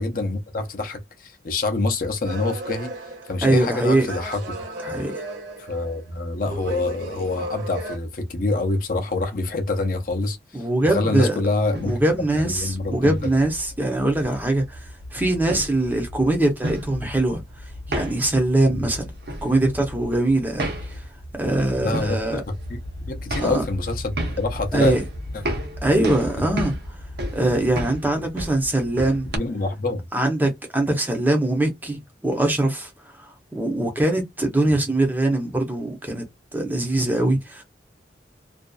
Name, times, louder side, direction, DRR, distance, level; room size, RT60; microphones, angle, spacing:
voice 1, 0.0-4.4 5.6-12.0 12.3-13.3 18.7-18.9 21.8-22.8 23.1-25.0 25.3-25.4 26.4-26.5 29.3-30.0, left 2 dB, 50° left, 0.5 m, -26 dB
sound 1, 2.2-3.7 4.1-6.1 6.5-8.0, right 2 dB, 80° right, 1.1 m, -35 dB
voice 2, 3.4-4.1 4.8-5.1 10.5-11.4 11.8-17.4 17.9-19.1 19.4-21.0 21.4-22.4 23.4-23.6 24.7-25.0 25.8-26.7 27.3-29.3 30.1-36.2 36.5-37.6, right 1 dB, 10° right, 0.6 m, -22 dB
sound 2, 11.7-29.4, equal, 60° right, 0.7 m, -33 dB
2.6 x 2.2 x 2.2 m
head